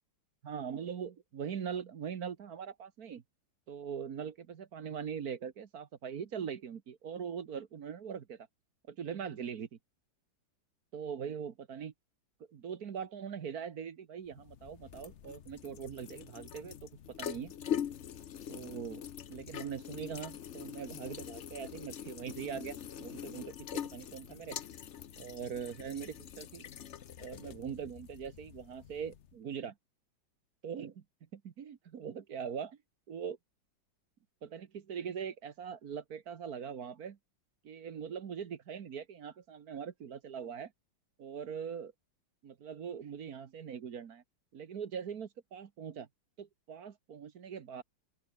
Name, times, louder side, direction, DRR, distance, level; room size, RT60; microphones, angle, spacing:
voice 1, 0.4-3.2 3.7-8.5 8.9-9.7 10.9-11.9 12.5-16.9 17.2-17.5 18.5-19.0 19.3-24.6 25.2-26.7 27.2-29.7 30.6-31.0 31.3-32.8 33.1-33.4 34.4-37.2 37.6-40.7 41.2-41.9 42.4-44.2 44.5-46.1 46.4-47.8, right 7 dB, 55° right, 1.6 m, -41 dB
sound 1, 14.3-29.3, left 9 dB, 55° left, 0.8 m, -43 dB
open air
omnidirectional pair, 2.1 m